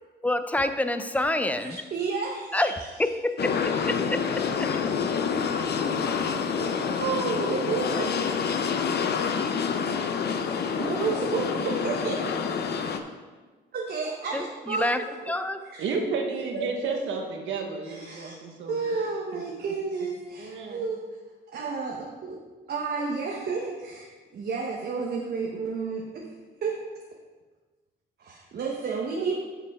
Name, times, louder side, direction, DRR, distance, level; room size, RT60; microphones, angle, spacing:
voice 1, 0.2-1.8 2.5-2.7 3.0-3.5 3.9-4.7 14.3-15.6, left 1 dB, 5° left, 9 dB, 0.6 m, -27 dB
voice 2, 1.6-3.1 7.0-8.3 10.3-10.4 10.8-12.2 13.7-15.3 15.6-15.8 16.5-17.0 17.9-18.3 18.7-21.0 21.5-22.4 22.7-26.2 26.6-26.8 28.2-29.3, right 4 dB, 55° right, -1 dB, 1.2 m, -31 dB
sound 1, 3.4-13.0, left 6 dB, 55° left, 0.8 m, -27 dB
voice 3, 15.8-19.4 20.4-20.9, right 4 dB, 75° right, 3 dB, 1.4 m, -32 dB
11.0 x 5.8 x 3.6 m, 1.4 s
cardioid pair, 90°, 20 cm